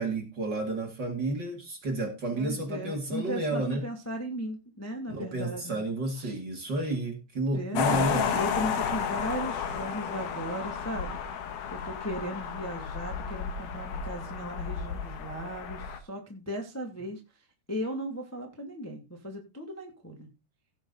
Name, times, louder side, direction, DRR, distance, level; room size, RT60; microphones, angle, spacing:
voice 1, 0.0-3.8 5.1-8.6, right 2 dB, 35° right, 3 dB, 2.1 m, -31 dB
voice 2, 2.3-5.8 6.1-6.4 7.5-11.2 11.7-17.2 17.7-20.3, equal, 10° left, 2 dB, 0.8 m, -37 dB
sound 1, 7.8-16.0, left 7 dB, 65° left, 2.5 m, -32 dB
16.5 x 6.5 x 3.9 m, 0.26 s
omnidirectional pair, 4.7 m